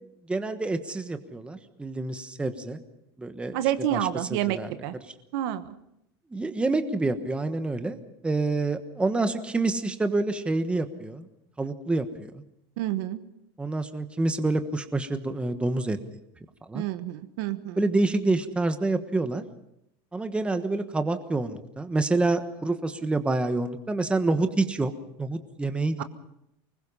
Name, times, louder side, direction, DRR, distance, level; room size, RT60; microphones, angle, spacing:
voice 1, 0.3-2.8 3.2-3.6 3.9-4.7 6.3-8.0 8.2-11.3 11.6-12.4 13.6-16.0 16.7-16.8 17.8-19.4 20.1-24.9 25.2-26.0, right 2 dB, 10° right, 8 dB, 1.3 m, -27 dB
voice 2, 3.5-4.9 5.3-5.7 12.8-13.2 16.7-17.8 26.0-26.1, right 12 dB, 65° right, 11 dB, 1.3 m, -29 dB
25.0 x 21.0 x 5.6 m, 0.82 s
supercardioid pair, 145°, 13 cm